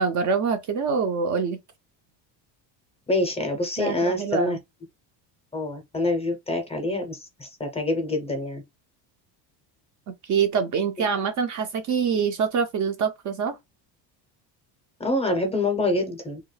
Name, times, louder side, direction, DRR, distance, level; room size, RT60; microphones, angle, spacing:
voice 1, 0.0-1.6 3.8-4.6 10.1-13.6, right 6 dB, 40° right, 0.4 m, -25 dB
voice 2, 3.1-4.6 5.5-8.6 15.0-16.4, left 2 dB, 15° left, 0.5 m, -26 dB
2.3 x 2.1 x 3.1 m
cardioid pair, 115°, 50 cm